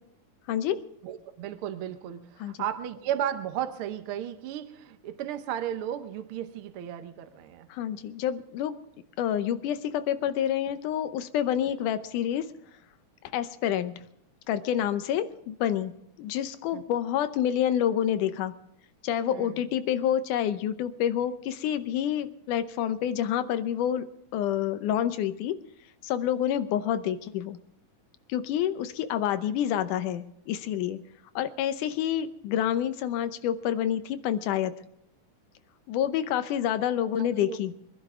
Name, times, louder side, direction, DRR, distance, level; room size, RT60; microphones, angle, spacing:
voice 1, 0.5-0.8 2.4-2.5 7.7-8.8 9.2-12.5 13.3-13.9 14.5-15.9 16.2-18.5 19.0-24.1 24.3-25.6 26.0-27.6 28.3-31.0 31.4-34.7 35.9-37.7, left 10 dB, 80° left, 11 dB, 2.3 m, -28 dB
voice 2, 1.0-7.7 16.7-16.8 19.3-19.6 37.1-37.6, right 10 dB, 75° right, 9 dB, 1.2 m, -34 dB
23.5 x 11.5 x 3.7 m, 0.77 s
omnidirectional pair, 3.6 m